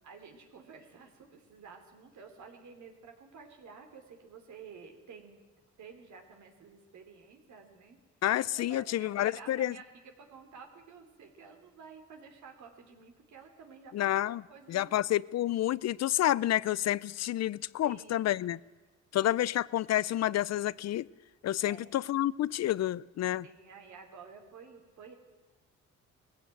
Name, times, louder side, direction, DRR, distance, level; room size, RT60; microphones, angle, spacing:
voice 1, 0.0-5.4 5.8-8.0 8.5-14.1 14.5-14.9 17.8-18.4 19.2-19.3 21.6-22.0 23.4-25.1, right 5 dB, 70° right, 4 dB, 3.3 m, -51 dB
voice 2, 8.2-9.7 13.9-14.4 14.7-18.6 19.1-21.1 21.4-23.5, left 13 dB, 60° left, 22 dB, 0.6 m, -29 dB
19.5 x 15.5 x 9.2 m, 1.3 s
cardioid pair, 90°, 30 cm